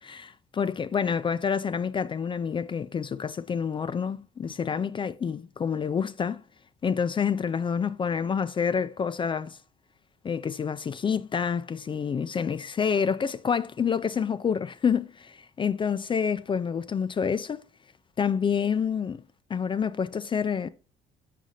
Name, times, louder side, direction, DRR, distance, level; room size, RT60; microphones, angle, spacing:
voice 1, 0.0-6.4 6.8-9.6 10.2-17.6 18.2-19.2 19.5-20.7, left 6 dB, 30° left, 0.5 m, -28 dB
7.5 x 6.1 x 2.8 m
cardioid pair, 110°, 17 cm